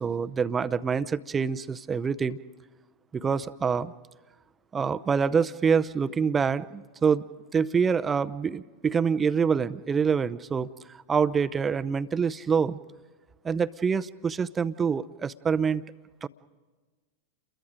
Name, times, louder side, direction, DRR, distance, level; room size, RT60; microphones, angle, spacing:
voice 1, 0.0-2.4 3.1-3.9 4.7-7.2 7.5-12.8 13.4-15.8 16.2-16.3, right 6 dB, 20° right, 15 dB, 0.7 m, -26 dB
30.0 x 22.5 x 5.1 m, 1.3 s
figure-of-eight pair, 90°, 0 cm